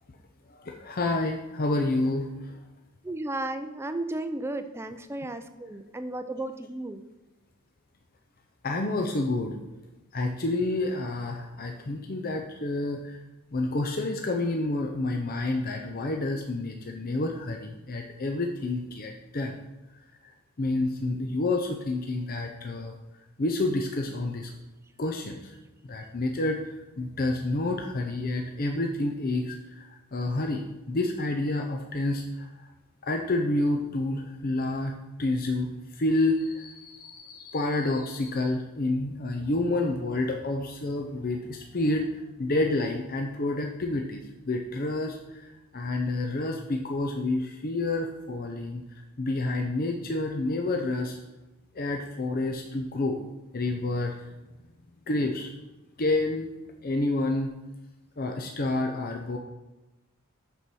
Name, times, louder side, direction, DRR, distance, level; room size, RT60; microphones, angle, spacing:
voice 1, 0.5-2.6 8.6-9.6 10.1-13.2 13.5-19.6 20.2-20.3 20.6-22.9 23.4-24.5 25.0-25.5 25.8-32.5 33.0-42.1 42.4-48.8 49.2-51.2 51.7-53.2 53.5-54.2 55.1-55.5 56.0-56.5 56.8-57.5 58.2-59.4, left 2 dB, 40° left, 3 dB, 0.6 m, -29 dB
voice 2, 3.0-7.0, right 2 dB, 10° right, 9 dB, 0.5 m, -34 dB
6.9 x 5.5 x 6.2 m, 1.1 s
head